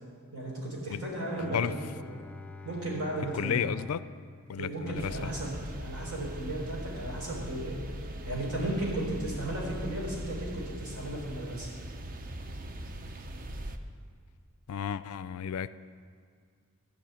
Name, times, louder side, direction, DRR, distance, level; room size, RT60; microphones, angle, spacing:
voice 1, 0.3-2.0 2.6-3.7 4.6-7.8 8.2-11.7, right 1 dB, 85° right, -2 dB, 3.8 m, -35 dB
Bowed string instrument, 1.3-5.4, left 3 dB, 5° left, 0.4 m, -47 dB
voice 2, 3.3-4.0 4.5-5.3 14.7-15.7, left 8 dB, 75° left, 16 dB, 0.4 m, -32 dB
sound 1, 4.9-13.8, right 1 dB, 40° right, 0.6 m, -40 dB
13.5 x 5.4 x 8.8 m, 2.1 s
head